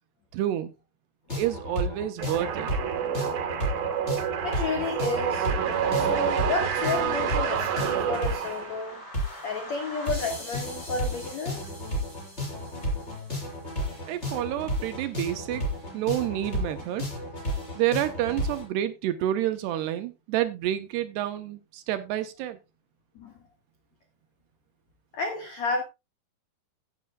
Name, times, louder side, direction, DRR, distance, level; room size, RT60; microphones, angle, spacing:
voice 1, 0.3-0.7 1.3-2.7 14.1-15.6 15.9-17.1 17.8-22.6, right 12 dB, 75° right, 2.6 m, -29 dB
sound 1, 1.3-18.6, equal, 15° left, 6.3 m, -33 dB
sound 2, 2.2-8.9, right 8 dB, 60° right, 2.9 m, -28 dB
voice 2, 4.4-5.5 6.0-9.0 9.4-11.7 14.3-14.4 23.2-23.3 25.1-25.8, left 4 dB, 60° left, 1.9 m, -31 dB
16.5 x 9.4 x 2.3 m
omnidirectional pair, 5.5 m